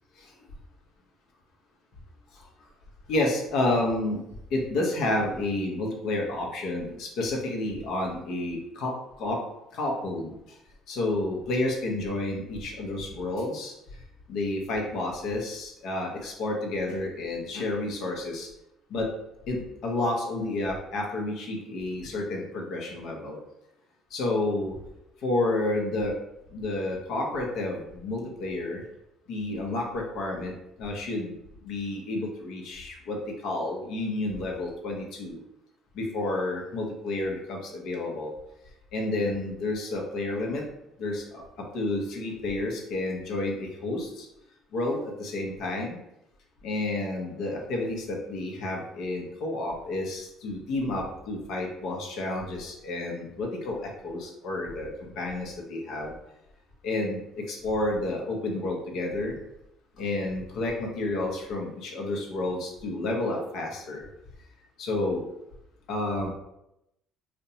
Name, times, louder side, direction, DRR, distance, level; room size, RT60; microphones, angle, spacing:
voice 1, 3.1-4.2 4.5-9.4 9.7-10.3 10.9-13.7 14.3-18.5 18.9-19.1 19.5-23.4 24.1-24.8 25.2-26.1 26.5-28.8 29.3-31.3 31.6-33.2 33.4-35.4 35.9-38.3 38.9-40.6 41.0-41.4 41.7-44.3 44.7-46.0 46.6-56.2 56.8-59.3 60.0-64.0 64.8-65.2 65.9-66.3, left 2 dB, 70° left, 0 dB, 0.6 m, -30 dB
2.5 x 2.1 x 2.8 m, 0.84 s
hypercardioid pair, 65°, 0 cm